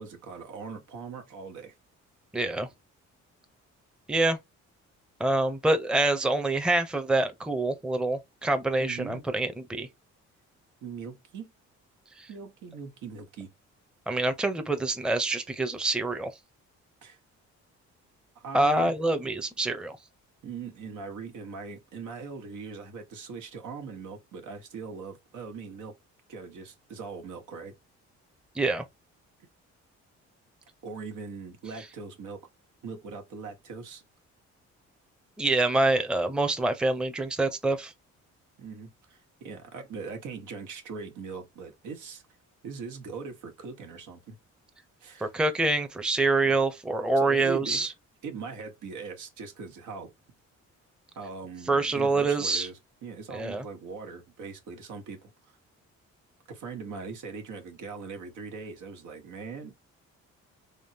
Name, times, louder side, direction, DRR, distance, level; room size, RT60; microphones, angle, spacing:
voice 1, 0.0-1.7 8.8-9.3 10.8-11.5 12.3-13.5 17.0-17.2 18.3-18.9 20.4-25.9 26.3-27.7 30.8-32.4 32.8-34.0 38.6-42.2 42.6-44.4 45.0-45.3 46.4-46.6 47.2-47.9 48.2-50.1 51.1-55.3 56.5-59.7, right 5 dB, 80° right, 1.4 m, -40 dB
voice 2, 2.3-2.7 4.1-4.4 5.2-9.9 12.2-12.3 14.1-16.3 18.5-20.0 28.6-28.8 35.4-37.9 45.2-47.9 51.7-52.7 53.3-53.6, right 2 dB, 5° right, 0.7 m, -26 dB
3.5 x 3.4 x 2.8 m
cardioid pair, 90°, 30 cm